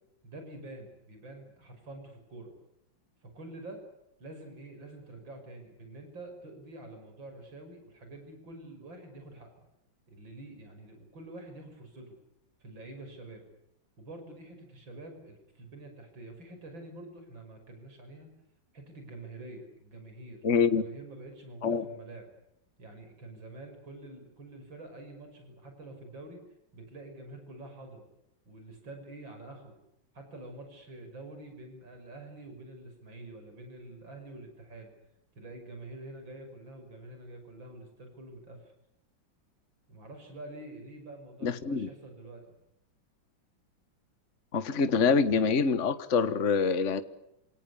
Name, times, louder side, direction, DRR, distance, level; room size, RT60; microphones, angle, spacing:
voice 1, 0.2-2.5 3.2-3.8 4.2-9.7 10.1-12.2 12.6-13.4 14.0-18.3 18.7-20.4 20.7-22.3 22.8-26.4 26.7-28.1 28.5-29.8 30.1-34.9 35.4-38.7 39.9-42.6, right 2 dB, 70° right, 5 dB, 6.7 m, -47 dB
voice 2, 20.4-20.8 21.6-21.8 41.4-41.9 44.5-47.0, left 5 dB, 40° left, 11 dB, 1.7 m, -25 dB
29.0 x 27.5 x 7.1 m, 0.82 s
omnidirectional pair, 2.1 m